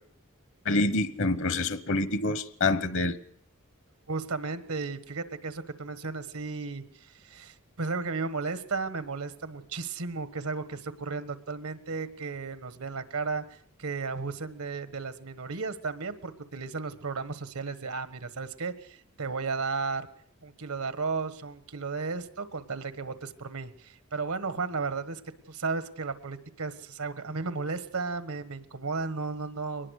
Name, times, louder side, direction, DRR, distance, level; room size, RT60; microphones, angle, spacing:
voice 1, 0.6-3.2, left 2 dB, 60° left, 1.1 m, -26 dB
voice 2, 4.1-20.1 20.4-25.2 25.5-29.9, right 4 dB, 85° right, 1.5 m, -34 dB
23.0 x 19.5 x 6.6 m
head